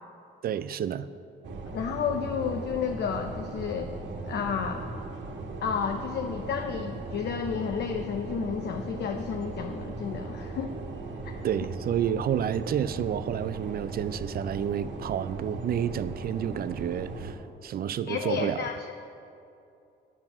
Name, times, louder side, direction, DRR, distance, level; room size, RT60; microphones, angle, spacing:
voice 1, 0.4-1.1 11.4-18.7, right 9 dB, 50° right, 14 dB, 0.4 m, -30 dB
sound 1, 1.4-17.3, right 3 dB, 65° right, 1.2 m, -38 dB
voice 2, 1.7-4.0 4.3-4.8 5.6-10.7 11.2-11.4 18.1-18.9, left 6 dB, 60° left, 5 dB, 0.6 m, -31 dB
8.8 x 7.4 x 5.9 m, 2.7 s
cardioid pair, 90°, 20 cm